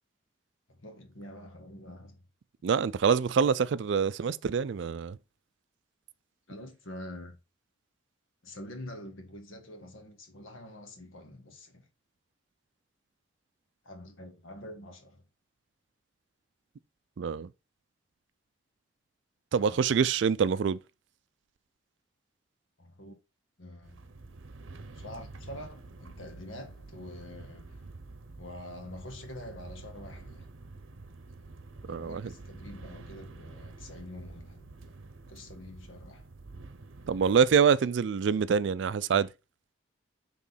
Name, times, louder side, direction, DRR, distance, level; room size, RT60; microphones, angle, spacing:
voice 1, 0.7-2.2 6.5-7.4 8.4-11.9 13.8-15.2 19.6-19.8 22.8-23.1 23.6-24.1 24.9-27.8 28.4-30.5 31.9-34.7 35.3-36.3, left 1 dB, 85° left, 1.5 m, -46 dB
voice 2, 2.6-5.2 17.2-17.5 19.5-20.8 31.9-32.2 37.1-39.3, right 6 dB, 65° right, 0.4 m, -25 dB
sound 1, 23.8-37.6, right 3 dB, 85° right, 0.7 m, -48 dB
6.1 x 3.7 x 5.4 m
head